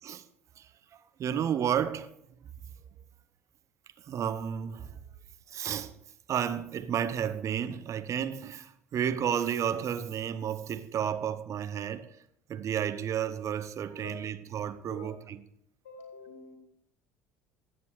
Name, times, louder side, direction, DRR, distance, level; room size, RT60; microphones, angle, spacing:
voice 1, 1.2-2.1 4.1-5.0 5.5-5.9 6.3-12.1 12.5-15.4, right 9 dB, 40° right, 0.7 m, -32 dB
voice 2, 14.0-14.3 14.9-15.2 15.8-16.6, left 2 dB, 70° left, 2.1 m, -47 dB
15.0 x 7.2 x 3.1 m
figure-of-eight pair, 60°, 8 cm